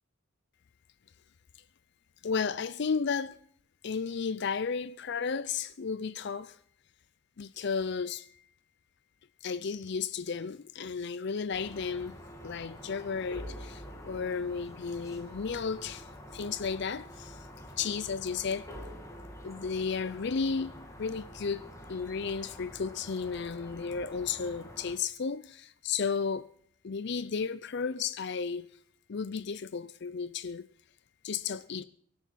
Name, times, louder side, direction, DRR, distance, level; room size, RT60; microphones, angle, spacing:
voice 1, 2.2-3.4 3.8-6.6 7.4-8.4 9.4-12.2 12.4-17.5 17.8-18.7 19.4-21.6 21.9-26.5 26.8-28.7 29.1-30.7 31.2-31.8, left 5 dB, 55° left, 0.5 m, -33 dB
sound 1, 11.5-24.9, equal, 15° left, 2.4 m, -47 dB
23.5 x 8.3 x 5.8 m
head